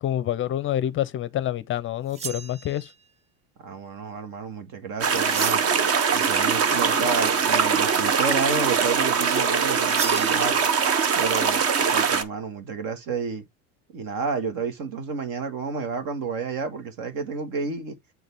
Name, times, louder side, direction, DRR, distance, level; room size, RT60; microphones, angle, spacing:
voice 1, 0.0-2.9, left 12 dB, 35° left, 0.5 m, -27 dB
sound 1, 2.1-3.0 5.2-5.9 9.9-10.4, right 6 dB, 20° right, 0.3 m, -33 dB
voice 2, 3.6-5.6 6.1-10.7 11.2-13.4 13.9-18.0, right 5 dB, 65° right, 1.8 m, -30 dB
sound 2, 5.0-12.2, right 6 dB, 40° right, 1.0 m, -22 dB
7.8 x 4.0 x 3.4 m
supercardioid pair, 115°, 38 cm